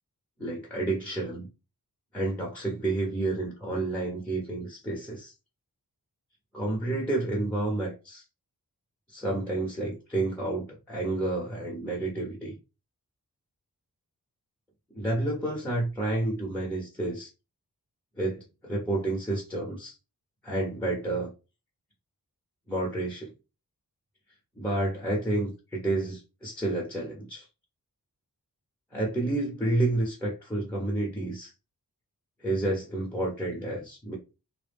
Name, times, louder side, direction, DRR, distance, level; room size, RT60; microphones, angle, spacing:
voice 1, 0.4-1.5 2.1-5.3 6.5-8.2 9.1-12.5 14.9-17.3 18.2-19.9 20.4-21.3 22.7-23.3 24.6-27.4 28.9-31.5 32.4-34.2, right 2 dB, 5° left, 0.8 m, -30 dB
2.2 x 2.0 x 3.3 m
wide cardioid pair, 80°, 36 cm